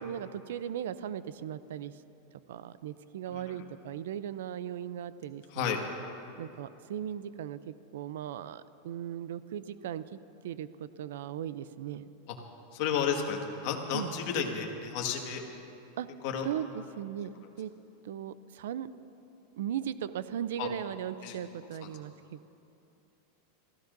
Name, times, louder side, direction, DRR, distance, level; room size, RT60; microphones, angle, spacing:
voice 1, 0.0-1.9 2.5-5.8 6.4-10.2 10.4-12.1 13.9-14.1 16.0-16.1 16.4-17.7 18.0-18.9 19.6-22.6, right 10 dB, 80° right, 15 dB, 0.4 m, -38 dB
voice 2, 3.3-3.6 5.5-5.8 12.3-12.4 12.7-15.4 16.2-16.5 20.6-20.7 21.2-21.4 21.8-21.9, left 7 dB, 50° left, 2 dB, 1.7 m, -32 dB
27.0 x 15.5 x 2.6 m, 2.8 s
supercardioid pair, 155°, 0 cm